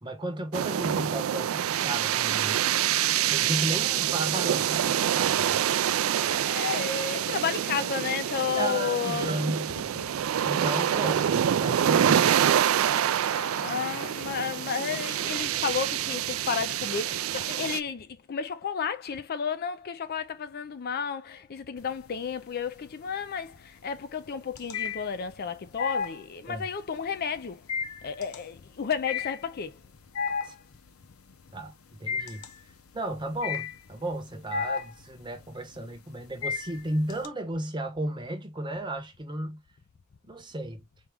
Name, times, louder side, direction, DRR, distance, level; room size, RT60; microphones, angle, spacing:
voice 1, 0.0-2.6 3.3-5.6 8.6-9.7 10.4-12.4 26.5-26.7 30.4-30.5 31.5-32.4 32.9-39.6 40.3-40.8, right 1 dB, 20° right, 0.9 m, -34 dB
sound 1, 0.5-17.8, right 10 dB, 70° right, 0.3 m, -26 dB
voice 2, 6.5-9.6 10.6-10.7 11.0-11.2 13.3-27.6 28.0-29.8, left 6 dB, 45° left, 0.4 m, -32 dB
sound 2, 21.8-22.4 22.8-37.3, left 6 dB, 85° left, 0.7 m, -34 dB
4.6 x 2.3 x 3.4 m
head